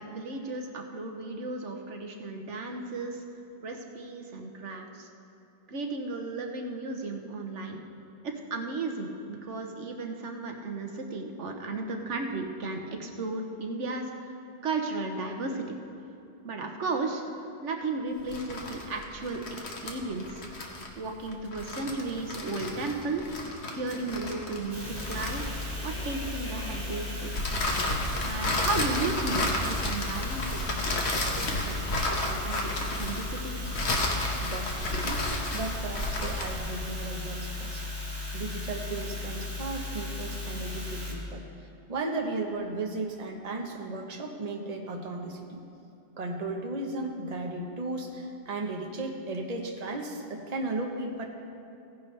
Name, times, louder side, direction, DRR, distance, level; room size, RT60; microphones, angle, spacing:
voice 1, 0.0-3.2 3.6-5.1 5.7-7.8 8.2-14.3 14.6-15.8 16.4-17.2 17.6-20.4 21.0-23.3 23.8-25.5 25.8-27.3 28.2-31.7 32.0-33.6, right 3 dB, 75° right, 3 dB, 1.2 m, -34 dB
sound 1, 18.2-26.0 27.3-36.6, left 1 dB, 65° left, 1.5 m, -32 dB
sound 2, 22.6-28.2, equal, 10° left, 1.5 m, -44 dB
sound 3, 24.7-41.1, left 2 dB, 20° right, 1.8 m, -36 dB
voice 2, 34.4-37.8 38.3-41.4 41.9-45.6 46.2-51.3, right 2 dB, 35° right, 1 dB, 1.0 m, -35 dB
16.5 x 10.5 x 3.3 m, 2.8 s
omnidirectional pair, 1.2 m